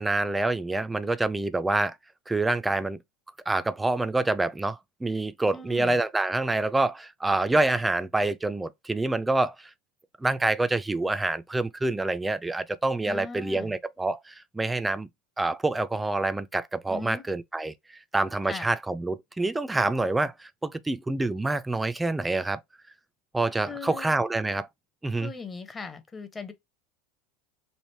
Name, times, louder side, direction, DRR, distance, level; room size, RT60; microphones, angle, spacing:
voice 1, 0.0-2.0 2.3-3.0 3.5-9.7 10.2-15.1 15.4-22.6 23.3-24.7 25.0-25.3, right 2 dB, 10° right, 0.4 m, -27 dB
voice 2, 5.5-6.0 13.0-13.8 16.9-17.3 18.4-18.7 23.7-24.1 25.2-26.5, left 4 dB, 20° left, 0.7 m, -39 dB
3.2 x 2.5 x 3.1 m
hypercardioid pair, 85°, 0 cm